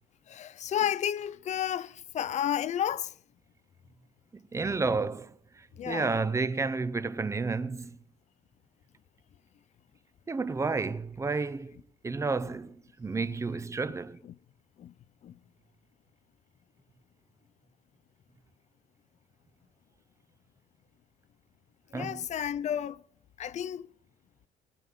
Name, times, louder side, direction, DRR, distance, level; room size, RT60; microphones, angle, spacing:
voice 1, 0.3-3.1 5.8-6.1 14.2-14.3 14.8-14.9 15.2-15.3 21.9-23.0 23.4-23.9, left 10 dB, 45° left, 0.4 m, -32 dB
voice 2, 4.3-5.3 5.9-8.0 10.3-11.7 12.0-14.2 21.9-22.3, right 4 dB, 15° right, 0.5 m, -31 dB
20.5 x 9.3 x 3.6 m
cardioid pair, 110°, 17 cm